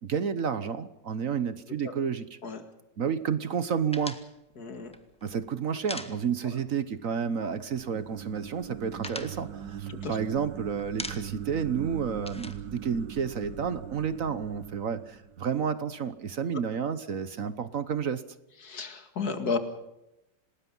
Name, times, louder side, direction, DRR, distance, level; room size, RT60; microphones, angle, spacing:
voice 1, 0.0-2.3 3.0-4.2 5.2-18.2, right 7 dB, 55° right, 13 dB, 1.3 m, -30 dB
sound 1, 3.9-6.7 7.0-7.1 7.4-8.1 8.5-10.5 10.8-11.5 11.8-13.6, left 1 dB, 5° left, 1.5 m, -42 dB
voice 2, 4.6-4.9 9.9-10.2 18.6-19.6, left 5 dB, 60° left, 8 dB, 2.7 m, -32 dB
sound 2, 6.7-15.9, right 9 dB, 80° right, 1.8 m, -41 dB
27.5 x 19.5 x 5.5 m, 0.92 s
omnidirectional pair, 1.9 m